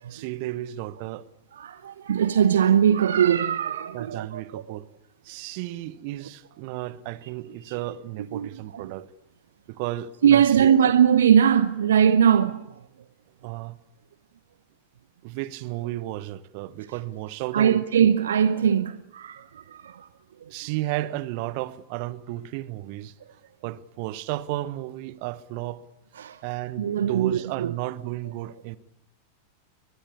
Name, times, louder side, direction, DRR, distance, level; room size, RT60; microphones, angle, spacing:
voice 1, 0.1-1.3 3.9-4.9 5.2-9.1 9.7-10.8 13.4-13.8 15.2-17.8 20.5-23.1 23.6-25.8 26.4-28.8, right 16 dB, 45° right, 1.1 m, -33 dB
voice 2, 1.5-4.6 8.3-8.9 10.2-12.6 17.5-20.1 20.4-20.5 26.2-26.4 26.8-27.7, right 8 dB, 65° right, 0.8 m, -21 dB
23.0 x 21.5 x 8.6 m
figure-of-eight pair, 90°, 0 cm